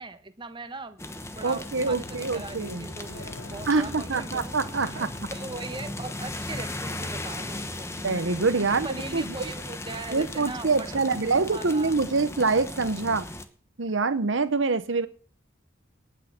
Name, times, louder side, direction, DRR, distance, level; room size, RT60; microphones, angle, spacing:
voice 1, 0.0-4.6 4.9-8.0 8.7-12.0, right 3 dB, 25° right, 1.1 m, -40 dB
sound 1, 1.0-13.4, left 1 dB, 15° left, 1.0 m, -37 dB
voice 2, 1.4-2.9 3.7-5.1 8.0-8.9 9.1-9.3 10.1-13.3 13.8-15.1, right 4 dB, 70° right, 0.9 m, -25 dB
sound 2, 1.7-6.7, left 2 dB, 70° left, 1.3 m, -46 dB
19.0 x 6.5 x 7.3 m
head